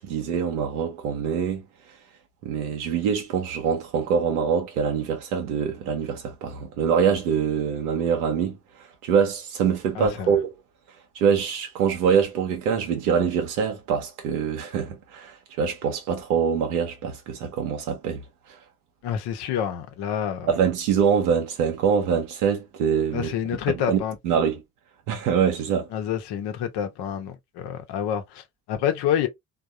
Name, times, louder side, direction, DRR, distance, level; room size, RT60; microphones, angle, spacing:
voice 1, 0.0-1.6 2.4-10.5 11.1-18.6 20.5-23.3 23.7-24.0 24.2-24.6 25.1-25.9, right 7 dB, 75° right, 1.0 m, -24 dB
voice 2, 9.9-10.3 19.0-20.5 23.1-24.2 25.9-29.3, left 9 dB, 60° left, 1.0 m, -28 dB
3.6 x 2.7 x 2.6 m
figure-of-eight pair, 45°, 44 cm